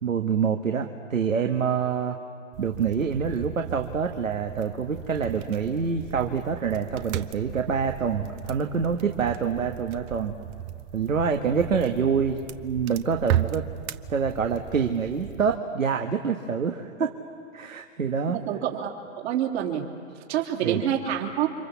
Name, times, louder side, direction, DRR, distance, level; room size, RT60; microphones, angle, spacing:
voice 1, 0.0-2.2 2.6-10.3 10.9-13.6 14.1-17.1 17.5-18.4 20.6-20.8, right 6 dB, 90° right, 4 dB, 1.6 m, -26 dB
sound 1, 2.5-15.6, right 11 dB, 30° right, 0.7 m, -36 dB
voice 2, 18.3-19.8 20.3-21.5, right 10 dB, 55° right, 1 dB, 3.4 m, -27 dB
30.0 x 26.0 x 7.2 m, 2.3 s
hypercardioid pair, 125°, 39 cm